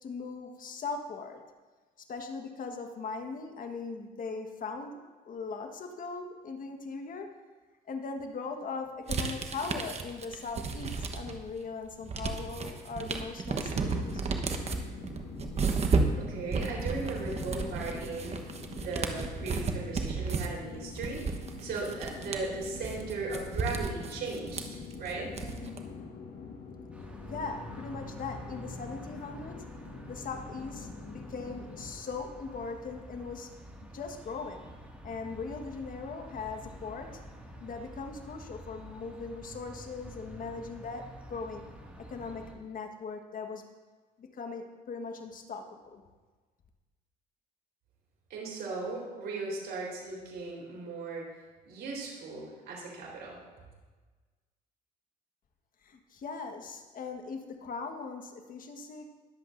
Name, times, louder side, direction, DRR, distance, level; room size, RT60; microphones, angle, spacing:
voice 1, 0.0-1.4 2.0-5.0 5.3-7.4 7.9-14.4 27.3-29.6 30.1-33.5 33.9-34.6 35.0-37.2 37.6-41.6 42.0-43.7 44.2-46.0 55.8-59.1, left 4 dB, 55° left, 5 dB, 1.5 m, -39 dB
sound 1, 9.1-11.5 11.8-25.8, right 4 dB, 40° right, 1.1 m, -33 dB
sound 2, 13.7-31.9, left 4 dB, 70° left, 1.5 m, -44 dB
voice 2, 16.2-18.4 18.7-24.6 25.0-25.3 48.3-51.2 51.6-53.4, right 3 dB, 70° right, -4 dB, 4.1 m, -37 dB
sound 3, 26.9-42.5, right 1 dB, 10° right, 2.1 m, -48 dB
21.5 x 7.8 x 2.6 m, 1.3 s
cardioid pair, 90°, 17 cm